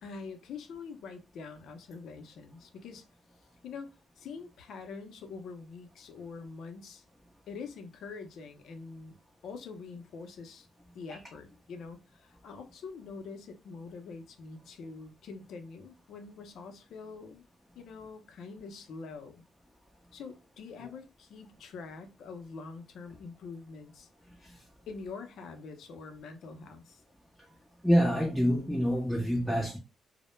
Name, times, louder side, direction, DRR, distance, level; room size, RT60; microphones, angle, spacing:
voice 1, 0.0-3.1 3.6-3.9 4.2-7.0 7.5-9.2 9.4-10.7 10.9-17.4 17.7-19.4 20.1-24.1 24.4-27.0, left 4 dB, 70° left, 0.5 m, -45 dB
voice 2, 27.8-29.8, equal, 5° left, 0.5 m, -26 dB
2.1 x 2.0 x 3.0 m
cardioid pair, 90°, 0 cm